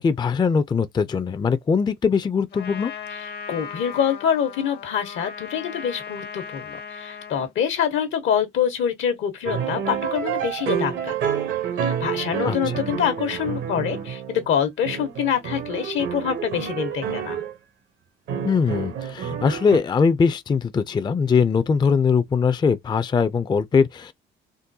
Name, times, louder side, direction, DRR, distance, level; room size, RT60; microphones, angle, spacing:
voice 1, 0.0-2.9 12.4-12.6 18.4-24.1, left 5 dB, 20° left, 0.3 m, -21 dB
Trumpet, 2.5-7.5, left 6 dB, 55° left, 0.7 m, -37 dB
voice 2, 3.1-11.1 11.8-17.4, left 8 dB, 80° left, 1.0 m, -25 dB
sound 1, 9.4-14.5 14.8-17.5 18.3-19.8, right 8 dB, 80° right, 1.0 m, -28 dB
3.7 x 2.2 x 2.6 m
cardioid pair, 90°, 20 cm